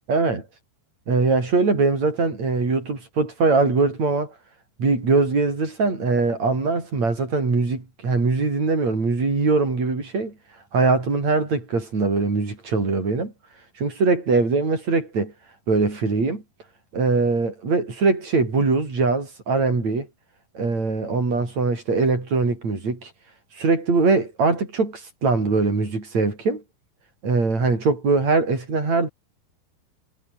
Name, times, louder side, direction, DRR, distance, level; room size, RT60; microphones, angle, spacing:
voice 1, 0.1-0.5 1.1-4.3 4.8-10.3 10.7-13.3 13.8-15.3 15.7-16.4 16.9-20.1 20.5-23.1 23.6-26.6 27.2-29.1, right 3 dB, 35° right, 7.7 m, -22 dB
omnidirectional pair, 5.6 m